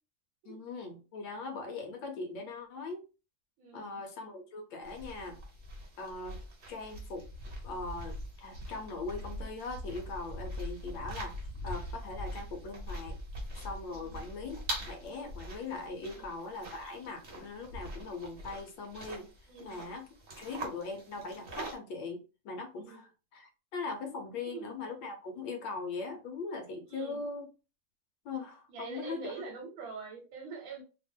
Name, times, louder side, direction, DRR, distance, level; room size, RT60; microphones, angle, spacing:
voice 1, 0.4-3.0 3.7-5.4 6.0-7.3 7.6-11.4 11.6-13.2 13.5-19.3 19.6-20.1 20.4-27.5 28.2-29.3, left 3 dB, 70° left, 4 dB, 1.3 m, -40 dB
voice 2, 3.6-4.0 13.9-14.2 16.1-16.3 19.5-19.8 22.8-23.0 24.4-24.7 26.8-27.2 28.7-30.8, right 4 dB, 70° right, 2 dB, 1.5 m, -45 dB
sound 1, 4.8-21.8, equal, 40° right, 1.0 m, -43 dB
3.3 x 2.5 x 3.5 m, 0.32 s
omnidirectional pair, 2.3 m